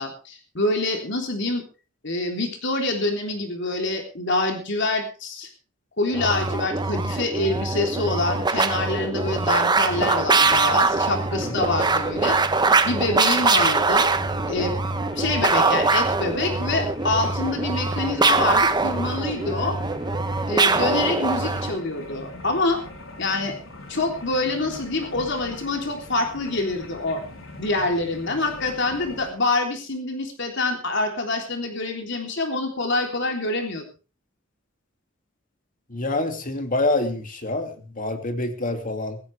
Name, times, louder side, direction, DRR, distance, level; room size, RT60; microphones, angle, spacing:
voice 1, 0.0-1.6 2.0-5.5 6.0-12.4 12.8-14.1 14.4-14.7 15.1-19.8 20.5-22.8 23.2-23.5 23.9-27.2 27.6-33.8, left 2 dB, 60° left, 3 dB, 3.5 m, -26 dB
sound 1, 6.1-21.8, right 3 dB, 20° right, 0.9 m, -22 dB
sound 2, 9.8-29.3, left 1 dB, 85° left, 4.1 m, -41 dB
voice 2, 35.9-39.2, left 2 dB, 40° left, 6 dB, 2.6 m, -26 dB
17.0 x 16.0 x 3.4 m, 0.35 s
head